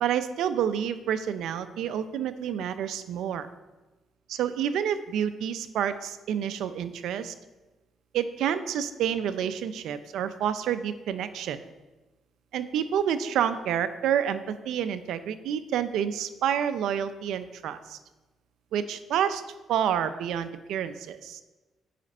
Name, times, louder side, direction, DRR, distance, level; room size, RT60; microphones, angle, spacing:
voice 1, 0.0-3.5 4.3-7.3 8.1-11.6 12.5-18.0 18.7-19.4 19.7-21.4, right 9 dB, 80° right, 12 dB, 0.5 m, -29 dB
7.5 x 5.1 x 5.4 m, 1.1 s
cardioid pair, 90°, 0 cm